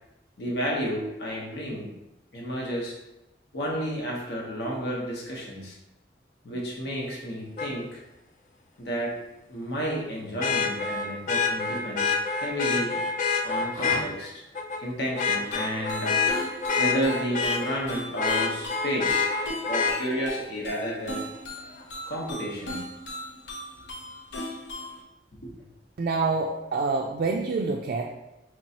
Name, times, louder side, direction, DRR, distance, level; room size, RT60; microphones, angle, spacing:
voice 1, 0.4-1.9 2.3-3.0 3.5-5.8 6.4-8.0 8.8-9.2 9.5-13.1 13.4-14.4 14.8-16.3 16.8-19.3 19.7-21.2 22.1-22.8 25.3-25.5, equal, 65° left, -2 dB, 1.0 m, -31 dB
Vehicle horn car horn honking, 7.6-7.7 10.4-14.0 14.5-14.8 15.2-17.8 18.2-19.9 21.8-21.9, left 4 dB, 45° left, 0.4 m, -26 dB
sound 1, 15.4-25.0, left 1 dB, 90° left, 0.7 m, -38 dB
voice 2, 26.0-28.1, right 3 dB, 50° right, 1 dB, 0.3 m, -27 dB
4.5 x 3.0 x 2.8 m, 0.93 s
head